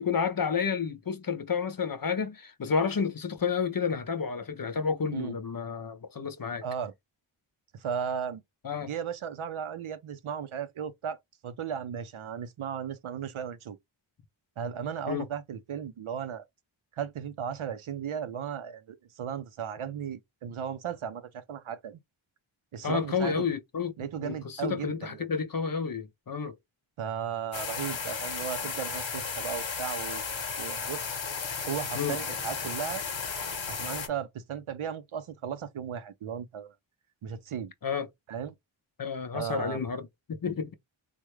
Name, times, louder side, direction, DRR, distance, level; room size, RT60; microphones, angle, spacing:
voice 1, 0.0-6.6 8.6-8.9 15.1-15.3 22.8-26.5 32.0-32.2 37.8-38.1 39.0-40.7, left 6 dB, 45° left, 0.5 m, -30 dB
voice 2, 6.6-6.9 7.7-8.4 8.8-11.2 11.4-13.8 14.6-16.4 16.9-22.0 22.7-23.5 24.0-25.2 27.0-31.1 31.7-33.0 33.7-36.7 37.2-37.7 38.3-38.5 39.3-39.8, right 8 dB, 80° right, 0.6 m, -36 dB
sound 1, 27.5-34.1, left 5 dB, 65° left, 0.9 m, -34 dB
3.5 x 2.1 x 3.1 m
wide cardioid pair, 45°, 49 cm